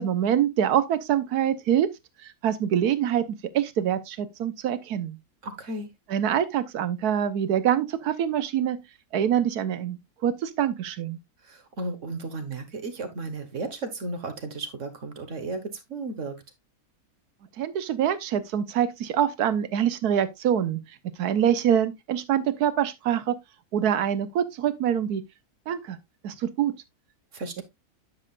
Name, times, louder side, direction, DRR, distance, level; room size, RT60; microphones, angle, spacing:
voice 1, 0.0-1.9 2.2-5.2 6.1-8.8 9.1-11.2 17.6-20.8 21.2-23.4 23.7-25.2 25.7-26.0 26.2-26.7 27.6-27.7, right 9 dB, 85° right, 1.4 m, -25 dB
voice 2, 5.4-5.9 11.4-16.4 27.3-27.6, right 3 dB, 55° right, 1.6 m, -34 dB
9.7 x 7.4 x 2.4 m
omnidirectional pair, 1.6 m